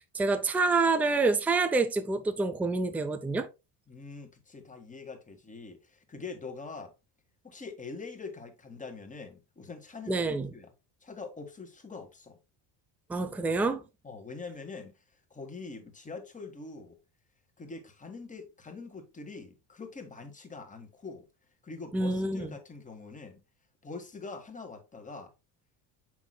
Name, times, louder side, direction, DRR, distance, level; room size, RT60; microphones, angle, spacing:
voice 1, 0.0-3.5 10.1-10.5 13.1-13.8 21.9-22.6, right 3 dB, 5° right, 0.5 m, -27 dB
voice 2, 3.9-6.9 7.4-10.7 11.0-12.4 14.0-15.0 15.3-17.0 17.6-21.3 21.6-23.4 23.8-25.3, left 4 dB, 15° left, 1.6 m, -44 dB
7.2 x 6.1 x 2.2 m
cardioid pair, 135°, 47 cm